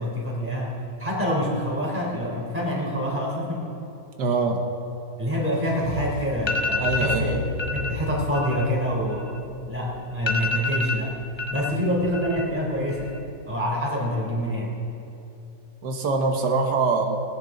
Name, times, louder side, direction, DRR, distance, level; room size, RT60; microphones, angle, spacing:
voice 1, 0.0-3.7 5.2-7.4 7.7-9.3 9.7-11.2 11.5-13.2 13.5-14.7, equal, 5° right, -3 dB, 3.3 m, -26 dB
voice 2, 4.2-4.6 6.8-7.4 15.8-17.2, right 4 dB, 80° right, 3 dB, 1.7 m, -23 dB
sound 1, 5.5-8.3, left 2 dB, 55° right, 3.6 m, -34 dB
sound 2, 6.0-6.1 6.4-7.2 7.6-7.9 8.2-9.7 9.9-10.0 10.3-11.7 12.0-12.6 12.9-13.4, left 4 dB, 20° left, 1.0 m, -28 dB
20.0 x 16.5 x 3.8 m, 2.8 s
omnidirectional pair, 1.8 m